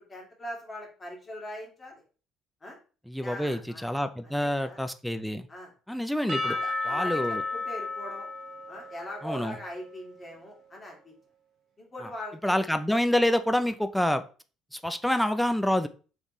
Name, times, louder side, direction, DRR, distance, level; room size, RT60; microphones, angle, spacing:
voice 1, 0.0-2.0 2.6-2.8 3.2-3.9 4.4-4.8 5.5-5.7 6.4-8.3 8.7-11.2 11.8-12.8, left 1 dB, 30° left, -1 dB, 1.8 m, -41 dB
voice 2, 3.1-5.5 5.9-6.6 6.9-7.4 9.2-9.6 12.0-12.1 12.4-14.2 14.7-15.9, left 1 dB, 5° left, 10 dB, 0.4 m, -27 dB
Percussion / Church bell, 6.3-10.6, left 3 dB, 55° right, 1.0 m, -34 dB
4.0 x 3.5 x 3.1 m, 0.36 s
supercardioid pair, 90°, 0 cm